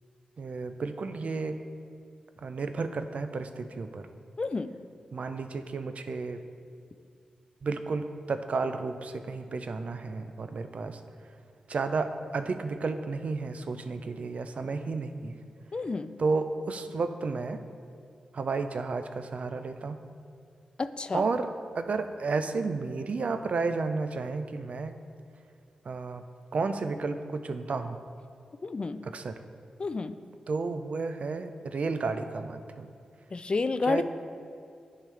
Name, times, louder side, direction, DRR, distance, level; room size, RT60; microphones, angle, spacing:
voice 1, 0.4-1.6 2.4-4.1 5.1-6.4 7.6-11.0 11.7-15.4 16.2-17.6 18.3-20.0 21.1-25.0 25.8-26.2 26.5-28.0 29.0-29.4 30.5-32.9 33.8-34.0, right 4 dB, 60° right, 8 dB, 0.4 m, -32 dB
voice 2, 4.4-4.7 15.7-16.1 20.8-21.2 28.6-29.0 29.8-30.1 33.3-34.0, left 3 dB, 40° left, 11 dB, 0.3 m, -30 dB
10.5 x 3.8 x 3.3 m, 2.4 s
cardioid pair, 45°, 2 cm